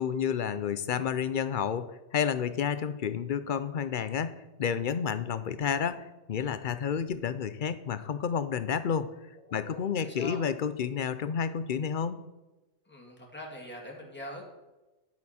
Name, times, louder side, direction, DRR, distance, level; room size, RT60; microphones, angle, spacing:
voice 1, 0.0-9.1 9.5-12.2, left 7 dB, 55° left, 13 dB, 0.7 m, -30 dB
voice 2, 9.5-10.4 12.9-14.4, equal, 10° left, -2 dB, 2.0 m, -43 dB
10.5 x 8.5 x 4.2 m, 1.1 s
omnidirectional pair, 1.2 m